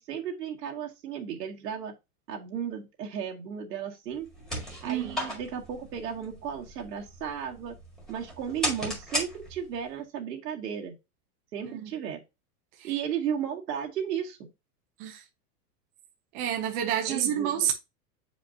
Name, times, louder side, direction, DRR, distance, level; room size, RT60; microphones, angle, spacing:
voice 1, 0.0-1.9 2.3-4.3 4.8-7.7 8.1-11.0 11.5-12.2 12.8-14.5 17.1-17.7, right 8 dB, 90° right, 2.1 m, -34 dB
sound 1, 4.1-9.9, equal, ahead, 1.6 m, -36 dB
voice 2, 4.8-5.2 11.6-11.9 12.8-12.9 15.0-15.2 16.3-17.7, right 10 dB, 20° right, 0.5 m, -29 dB
7.8 x 5.0 x 2.7 m
supercardioid pair, 155°, 47 cm